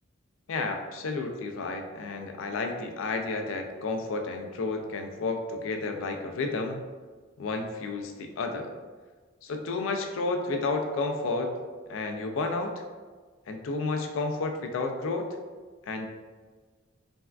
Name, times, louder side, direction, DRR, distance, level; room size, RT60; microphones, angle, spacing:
voice 1, 0.5-6.8 7.4-8.7 9.4-11.5 11.9-12.7 13.5-15.2 15.9-16.1, left 3 dB, 70° left, 4 dB, 0.4 m, -31 dB
3.3 x 2.2 x 2.3 m, 1.4 s
head